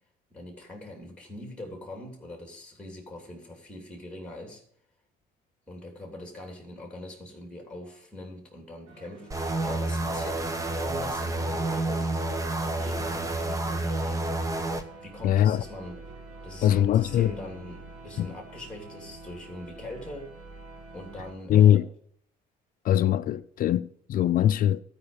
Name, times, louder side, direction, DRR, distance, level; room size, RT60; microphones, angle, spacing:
voice 1, 0.3-4.6 5.7-12.2 12.6-14.3 15.0-16.0 16.4-20.3 20.9-21.8, left 1 dB, 5° left, 3.1 m, -42 dB
sound 1, 8.9-21.3, right 3 dB, 85° right, 2.2 m, -47 dB
sound 2, 9.3-14.8, right 2 dB, 20° right, 1.1 m, -29 dB
voice 2, 15.2-15.6 16.6-17.3 18.2-18.3 21.5-21.9 22.8-24.8, left 11 dB, 55° left, 0.5 m, -21 dB
13.0 x 5.2 x 7.2 m
cardioid pair, 110°, 17 cm